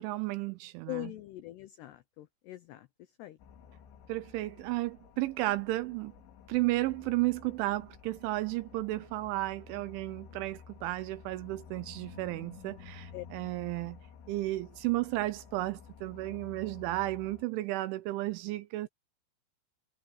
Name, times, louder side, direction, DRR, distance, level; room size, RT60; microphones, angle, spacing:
voice 1, 0.0-1.1 4.1-6.1 6.5-14.0 14.3-18.9, right 18 dB, 80° right, 2.9 m, -33 dB
voice 2, 0.9-2.9 3.2-3.4 13.1-13.3, left 17 dB, 90° left, 2.3 m, -42 dB
sound 1, 3.4-17.4, left 7 dB, 65° left, 4.1 m, -52 dB
omnidirectional pair, 6.0 m